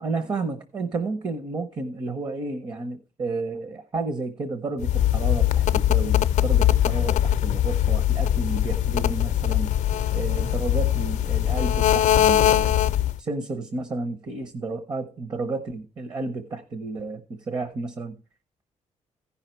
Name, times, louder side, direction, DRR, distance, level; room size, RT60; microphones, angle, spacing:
voice 1, 0.0-9.7 10.1-12.8 13.2-18.1, right 3 dB, 35° right, 10 dB, 0.8 m, -31 dB
sound 1, 4.8-13.2, left 11 dB, 70° left, 0.5 m, -21 dB
14.5 x 5.6 x 4.4 m, 0.35 s
cardioid pair, 175°, 12 cm